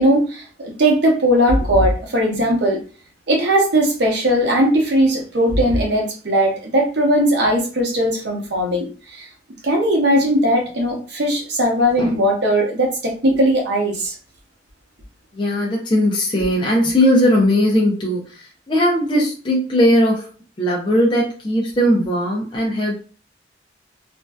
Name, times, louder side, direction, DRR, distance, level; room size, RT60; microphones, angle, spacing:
voice 1, 0.0-2.8 3.3-9.3 9.6-14.1, equal, 65° right, 0.8 m, -18 dB
voice 2, 15.3-20.3 20.6-23.0, equal, 25° left, 0.4 m, -18 dB
2.5 x 2.2 x 2.2 m
head